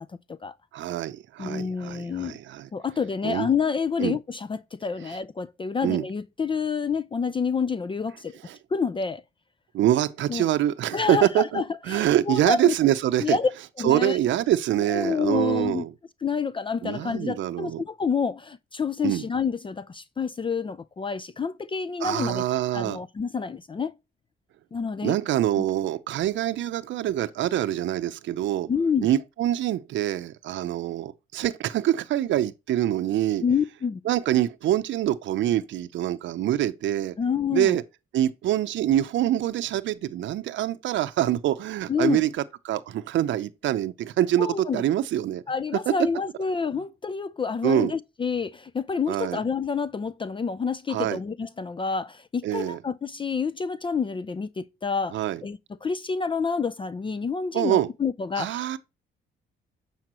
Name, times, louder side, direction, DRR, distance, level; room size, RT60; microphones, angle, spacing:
voice 1, 0.7-2.7 3.2-3.5 4.0-4.2 5.8-6.0 8.5-8.6 9.7-13.4 13.8-15.9 16.8-17.8 19.0-19.2 22.0-23.0 25.0-28.7 29.0-33.4 34.1-37.1 37.5-37.8 38.1-42.3 42.6-44.5 44.7-45.4 47.6-47.9 49.1-49.4 50.9-51.2 52.4-52.8 55.1-55.4 57.5-57.9 58.4-58.8, right 12 dB, 70° right, 0.6 m, -25 dB
voice 2, 1.4-2.4 2.7-8.4 8.7-9.2 10.3-10.5 10.9-12.7 13.2-13.5 13.8-14.2 14.9-15.9 16.2-22.4 22.7-23.9 24.7-25.2 25.6-25.7 28.7-29.1 33.4-34.0 37.2-37.8 41.9-42.2 44.4-44.8 45.5-58.8, left 5 dB, 25° left, 0.4 m, -28 dB
7.4 x 5.7 x 2.9 m
cardioid pair, 90°, 20 cm